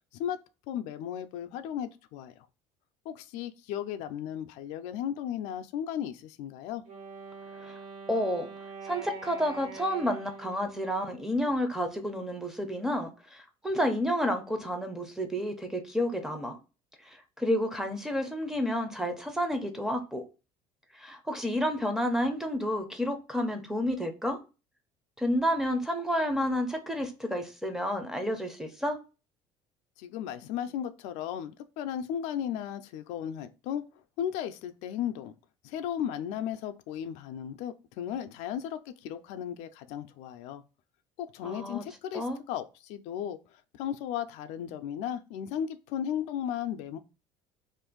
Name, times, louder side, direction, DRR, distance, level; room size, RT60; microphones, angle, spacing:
voice 1, 0.7-2.5 3.1-6.8 30.0-33.8 34.2-35.3 35.6-40.6 41.2-47.0, left 9 dB, 75° left, 0.4 m, -35 dB
Wind instrument woodwind instrument, 6.8-11.9, right 4 dB, 70° right, 1.0 m, -45 dB
voice 2, 8.1-8.5 8.8-16.5 17.1-20.2 20.9-24.4 25.2-29.0 41.4-41.8 42.1-42.4, equal, 5° right, 0.5 m, -30 dB
2.5 x 2.5 x 3.7 m
cardioid pair, 150°, 12 cm